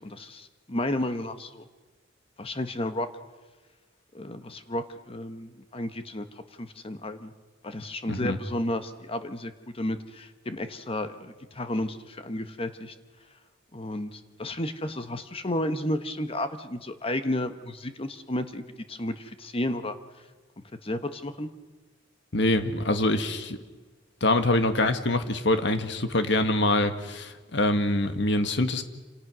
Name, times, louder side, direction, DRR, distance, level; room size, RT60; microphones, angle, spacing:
voice 1, 0.0-1.6 2.4-3.1 4.1-6.3 6.6-7.3 7.6-12.9 13.7-20.0 20.8-21.5, left 1 dB, 30° left, 9 dB, 1.3 m, -32 dB
voice 2, 8.1-8.4 22.3-23.6 24.2-28.8, left 2 dB, 65° left, 8 dB, 1.8 m, -25 dB
28.0 x 27.0 x 6.3 m, 1.3 s
head